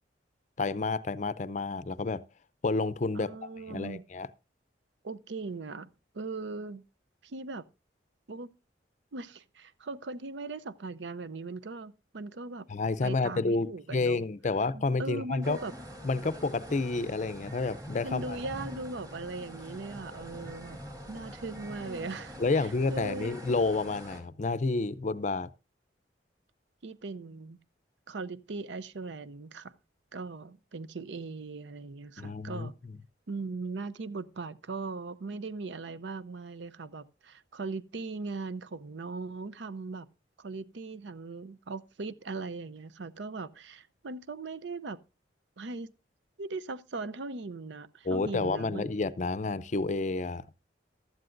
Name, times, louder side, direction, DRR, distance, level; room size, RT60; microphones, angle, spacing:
voice 1, 0.6-2.2 2.6-4.3 12.7-15.6 16.0-18.4 22.4-25.5 32.2-33.0 48.0-50.4, left 3 dB, 40° left, 0.5 m, -30 dB
voice 2, 3.1-4.0 5.0-5.9 6.1-6.8 7.2-7.7 8.3-8.5 9.1-12.7 13.0-14.2 14.7-15.7 18.0-20.8 21.1-23.3 26.8-27.6 28.1-29.7 30.1-32.8 33.3-40.1 40.4-45.0 45.6-45.9 46.4-48.9, right 3 dB, 75° right, 0.6 m, -39 dB
sound 1, 15.4-24.2, equal, 20° right, 2.8 m, -44 dB
15.5 x 12.0 x 2.5 m
head